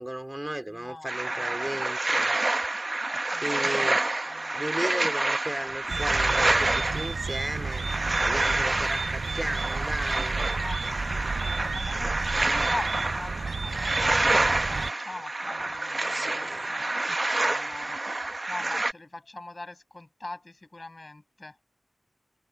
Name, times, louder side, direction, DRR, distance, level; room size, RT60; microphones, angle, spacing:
voice 1, 0.0-2.4 3.4-4.0 4.5-7.9 8.2-10.4 16.0-16.7, right 1 dB, 15° right, 2.9 m, -35 dB
voice 2, 0.7-1.5 3.3-4.7 10.6-18.0 18.5-21.5, left 2 dB, 40° left, 6.4 m, -42 dB
sound 1, 1.1-18.9, right 2 dB, 45° right, 0.8 m, -28 dB
sound 2, 5.9-14.9, right 4 dB, 85° right, 0.4 m, -33 dB
wide cardioid pair, 55°, 0 cm